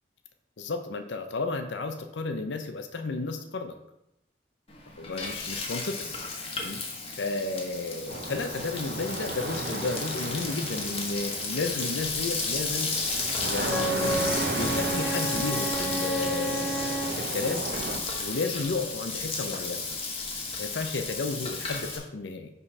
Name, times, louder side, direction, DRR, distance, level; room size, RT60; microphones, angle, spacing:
voice 1, 0.6-3.7 5.0-6.1 6.6-6.8 7.2-12.9 13.4-17.6 18.2-19.8 20.6-22.5, left 3 dB, 90° left, 7 dB, 0.6 m, -33 dB
Frying (food), 4.7-22.0, left 4 dB, 35° left, 1.1 m, -33 dB
sound 1, 8.1-18.0, right 3 dB, 55° right, 0.6 m, -35 dB
Wind instrument woodwind instrument, 13.6-17.2, right 1 dB, 10° left, 0.8 m, -31 dB
5.5 x 4.2 x 5.9 m, 0.86 s
head